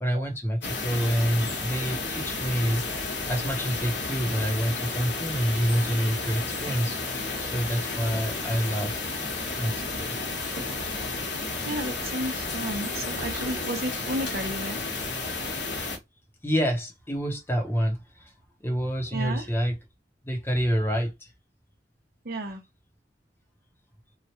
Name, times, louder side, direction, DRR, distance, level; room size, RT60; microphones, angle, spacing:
voice 1, 0.0-3.0 3.3-8.9 9.6-10.2 16.4-18.3 18.6-19.8 20.2-21.3, equal, 15° left, 0.8 m, -27 dB
sound 1, 0.6-16.0, left 3 dB, 70° left, 1.2 m, -32 dB
voice 2, 11.6-14.8 19.1-19.5 22.2-22.6, right 1 dB, 55° right, 0.8 m, -32 dB
3.0 x 2.4 x 2.9 m
head